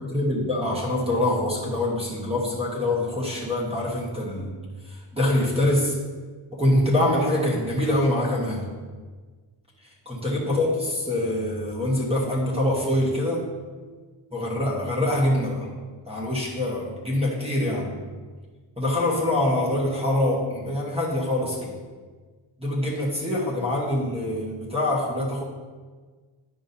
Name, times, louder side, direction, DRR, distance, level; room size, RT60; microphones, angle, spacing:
voice 1, 0.0-4.5 4.8-6.0 6.5-8.6 10.0-13.4 14.3-15.7 16.1-17.9 18.8-21.7 22.6-25.4, left 1 dB, 10° right, -4 dB, 1.1 m, -24 dB
9.7 x 5.4 x 2.6 m, 1.4 s
wide cardioid pair, 160°, 48 cm